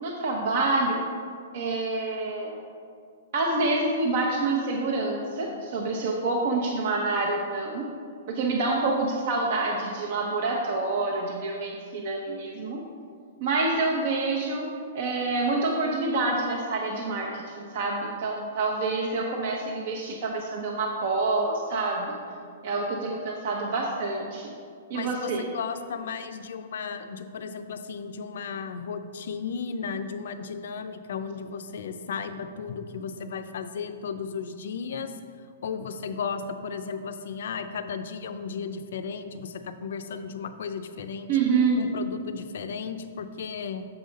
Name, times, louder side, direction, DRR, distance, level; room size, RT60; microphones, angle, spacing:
voice 1, 0.0-1.0 1.5-2.6 3.3-7.9 8.3-12.8 13.4-14.7 14.9-22.2 22.6-24.5 24.9-25.4 41.3-41.8, right 3 dB, 55° right, -1 dB, 0.8 m, -27 dB
voice 2, 24.9-35.1 35.6-41.3 41.8-43.9, left 6 dB, 70° left, 9 dB, 0.5 m, -35 dB
6.9 x 4.0 x 5.1 m, 2.2 s
hypercardioid pair, 150°, 0 cm